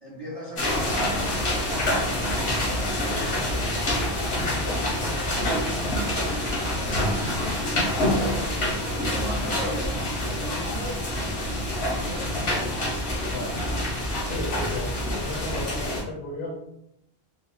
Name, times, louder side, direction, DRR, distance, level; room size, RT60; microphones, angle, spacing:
voice 1, 0.0-7.3 8.0-12.7, left 1 dB, 40° right, -7 dB, 0.6 m, -39 dB
sound 1, 0.6-16.0, left 1 dB, 90° left, 1.2 m, -26 dB
voice 2, 7.8-8.3 13.3-13.9 14.3-16.6, left 1 dB, 60° left, -2 dB, 0.7 m, -35 dB
3.6 x 2.1 x 2.3 m, 0.79 s
omnidirectional pair, 1.0 m